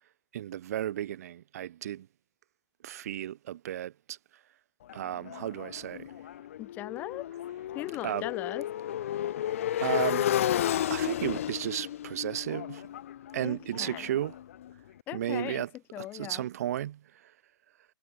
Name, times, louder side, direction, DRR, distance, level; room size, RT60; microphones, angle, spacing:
voice 1, 0.3-2.1 2.8-4.2 4.9-6.1 8.0-8.2 9.8-10.3 10.9-12.8 13.3-14.4 15.1-15.7 16.0-17.3, right 12 dB, 35° right, 1.4 m, -34 dB
Motorcycle, 4.9-14.7, left 11 dB, 30° left, 0.5 m, -33 dB
voice 2, 6.6-7.3 7.7-8.7 13.4-14.1 15.1-15.7 15.9-16.5, left 15 dB, 10° left, 1.0 m, -38 dB
hypercardioid pair, 165°, 14 cm